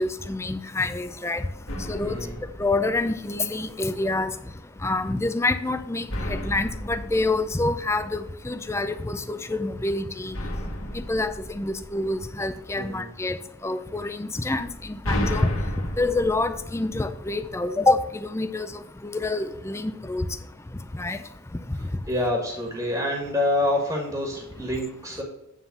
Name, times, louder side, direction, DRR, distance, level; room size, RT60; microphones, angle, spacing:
voice 1, 0.0-1.4 1.9-2.2 2.6-4.3 4.8-10.3 11.1-13.4 13.6-15.5 16.0-18.7 19.0-20.3 21.0-21.2, left 2 dB, 15° left, 9 dB, 0.4 m, -27 dB
sound 1, 1.7-3.5 6.1-8.5 10.3-12.6 14.6-17.6, left 1 dB, 80° left, 1.8 m, -33 dB
voice 2, 2.0-2.4 12.7-13.1 21.7-25.2, left 1 dB, 15° right, 0 dB, 1.5 m, -27 dB
9.5 x 3.7 x 6.8 m, 0.83 s
head